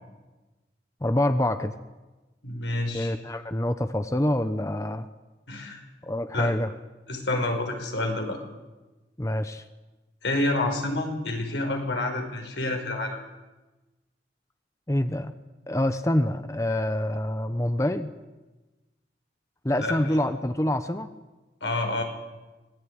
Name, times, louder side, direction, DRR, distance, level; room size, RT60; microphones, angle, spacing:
voice 1, 1.0-1.7 2.9-5.1 6.0-6.7 9.2-9.7 14.9-15.3 15.7-18.1 19.6-21.1, left 1 dB, 15° left, 9 dB, 0.9 m, -26 dB
voice 2, 2.4-3.1 5.5-5.8 6.3-6.5 7.1-8.4 10.2-13.2 19.8-20.0 21.6-22.0, left 2 dB, 85° left, 4 dB, 5.4 m, -28 dB
25.5 x 19.5 x 9.6 m, 1.2 s
head